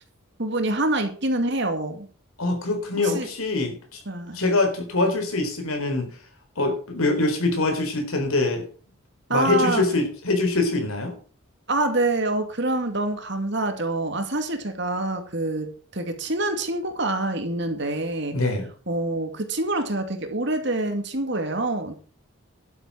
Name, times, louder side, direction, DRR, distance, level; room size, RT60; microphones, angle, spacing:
voice 1, 0.4-2.1 3.0-3.3 4.1-4.4 9.3-9.8 11.7-18.3 18.9-22.0, right 2 dB, 55° right, 6 dB, 2.3 m, -26 dB
voice 2, 2.4-4.0 4.3-6.1 6.6-8.7 9.3-11.2 18.3-18.7, left 2 dB, 85° left, 4 dB, 4.1 m, -24 dB
12.0 x 8.0 x 6.3 m, 0.41 s
head